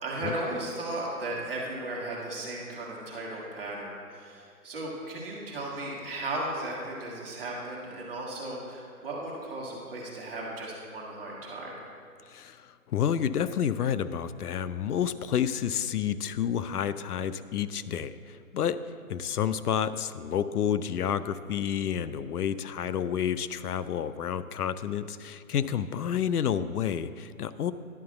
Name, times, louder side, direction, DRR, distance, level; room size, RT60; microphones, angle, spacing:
voice 1, 0.0-11.7, right 2 dB, 40° right, -4 dB, 1.8 m, -36 dB
voice 2, 12.3-27.7, left 8 dB, 80° left, 14 dB, 0.5 m, -30 dB
10.5 x 3.9 x 6.8 m, 2.3 s
hypercardioid pair, 170°, 45 cm